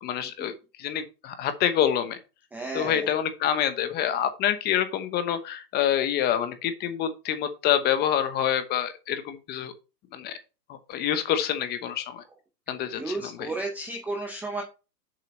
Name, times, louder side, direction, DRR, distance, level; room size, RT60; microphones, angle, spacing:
voice 1, 0.0-0.5 0.8-2.2 2.7-9.7 10.1-10.3 10.7-12.2 12.7-13.2, left 10 dB, 20° left, 10 dB, 1.0 m, -26 dB
voice 2, 2.5-3.1 12.9-14.6, right 2 dB, 5° right, 1 dB, 0.6 m, -33 dB
7.2 x 5.6 x 4.1 m, 0.29 s
hypercardioid pair, 140°, 49 cm